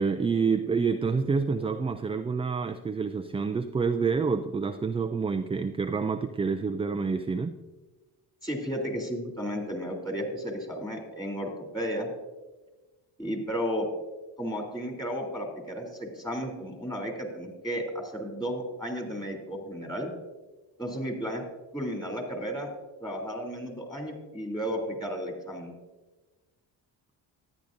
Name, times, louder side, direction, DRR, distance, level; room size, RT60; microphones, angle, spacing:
voice 1, 0.0-7.5, right 5 dB, 15° right, 7 dB, 0.3 m, -28 dB
voice 2, 8.4-12.1 13.2-13.9 14.4-20.1 20.8-21.4 21.7-22.7 23.0-25.7, equal, 10° left, 2 dB, 3.1 m, -33 dB
13.0 x 9.4 x 2.7 m, 1.2 s
supercardioid pair, 55°, 48 cm